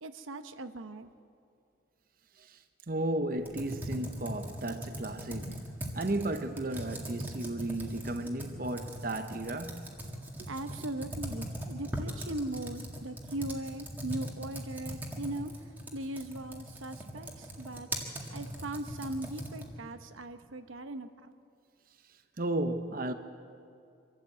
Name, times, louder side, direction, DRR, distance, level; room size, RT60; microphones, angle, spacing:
voice 1, 0.0-1.1 10.5-15.5 15.9-17.9 18.3-21.3, right 1 dB, 90° right, 0.9 m, -39 dB
voice 2, 2.9-5.6 5.9-9.9 10.4-10.5 22.4-23.1, right 1 dB, 45° right, 0.8 m, -34 dB
Computer keyboard, 3.4-19.8, equal, 10° right, 2.0 m, -40 dB
25.0 x 13.0 x 8.2 m
head